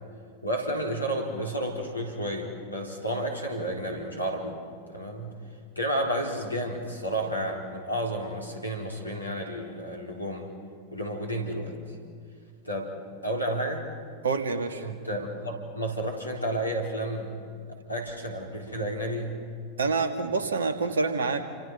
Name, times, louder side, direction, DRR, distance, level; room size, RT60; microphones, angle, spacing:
voice 1, 0.4-4.6 4.9-5.3 5.8-10.5 10.9-11.8 12.6-12.9 13.2-13.9 14.8-17.5 17.9-19.4, right 1 dB, 85° left, 1 dB, 3.9 m, -31 dB
voice 2, 14.2-14.9 19.8-21.4, right 4 dB, 70° right, 9 dB, 1.9 m, -27 dB
29.0 x 25.5 x 5.4 m, 2.2 s
figure-of-eight pair, 90°, 0 cm